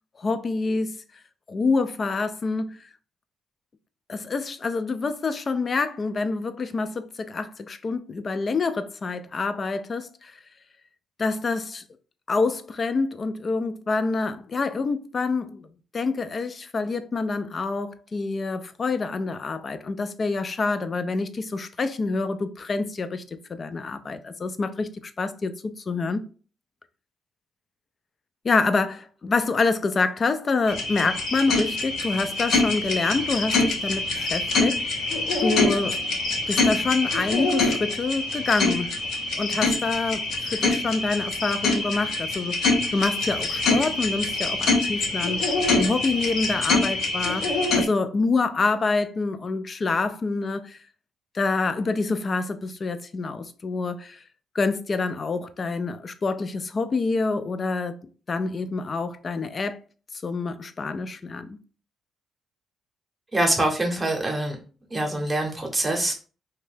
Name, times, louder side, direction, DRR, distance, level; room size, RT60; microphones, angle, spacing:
voice 1, 0.2-1.0 1.5-2.8 4.1-10.4 11.2-11.8 12.3-15.7 15.9-24.9 25.2-26.2 28.4-34.8 35.4-36.0 36.5-38.9 39.3-42.6 42.9-45.5 45.8-50.8 51.3-54.2 54.5-58.0 58.3-59.8 60.2-61.6, left 3 dB, 40° left, 0.3 m, -27 dB
sound 1, 30.7-47.9, left 3 dB, 70° left, 0.6 m, -25 dB
voice 2, 63.3-64.6 64.9-66.1, right 1 dB, 20° right, 0.8 m, -24 dB
2.7 x 2.2 x 3.2 m
cardioid pair, 90°, 0 cm